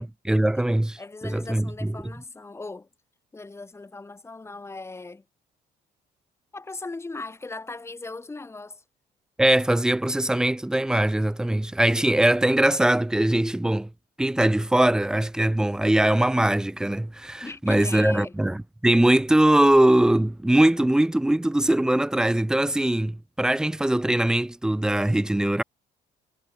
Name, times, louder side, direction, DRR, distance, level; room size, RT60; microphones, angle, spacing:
voice 1, 0.0-2.0 9.4-13.9 14.2-25.6, right 1 dB, 5° right, 0.4 m, -21 dB
voice 2, 0.6-2.9 3.3-5.2 6.5-8.8 17.4-18.4, left 3 dB, 15° left, 1.5 m, -38 dB
cardioid pair, 110°, 17 cm